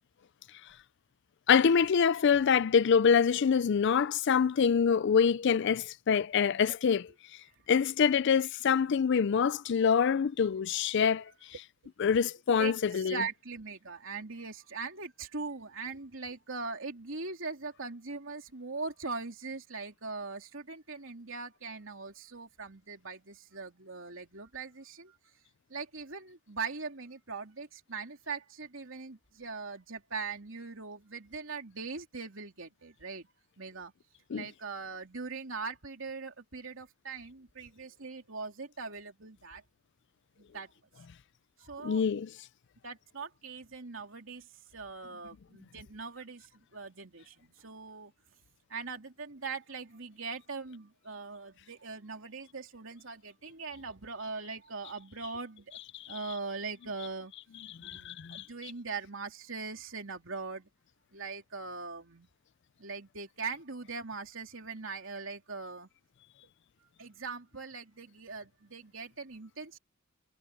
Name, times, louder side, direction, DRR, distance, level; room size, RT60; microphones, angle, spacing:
voice 1, 1.5-7.1 7.7-11.2 12.0-13.2 34.3-34.5 41.8-42.3 55.9-56.1 57.7-58.5, left 6 dB, 60° left, 0.4 m, -25 dB
voice 2, 12.6-25.2 25.7-33.3 33.6-33.9 34.3-39.6 40.4-40.7 41.6-42.0 42.8-48.1 48.7-55.8 56.1-57.3 57.8-60.7 61.1-62.3 62.8-65.9 67.0-69.8, right 4 dB, 75° right, 3.1 m, -41 dB
head